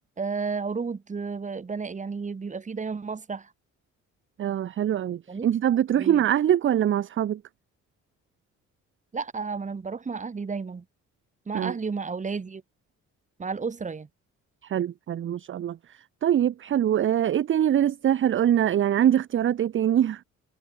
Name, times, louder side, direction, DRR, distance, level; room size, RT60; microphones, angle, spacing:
voice 1, 0.2-3.5 5.3-5.5 6.0-6.2 9.1-10.8 11.5-12.6 13.4-14.1, right 5 dB, 25° right, 1.2 m, -32 dB
voice 2, 4.4-7.4 11.5-11.7 14.6-20.2, right 10 dB, 40° right, 0.5 m, -23 dB
cardioid pair, 90°, 30 cm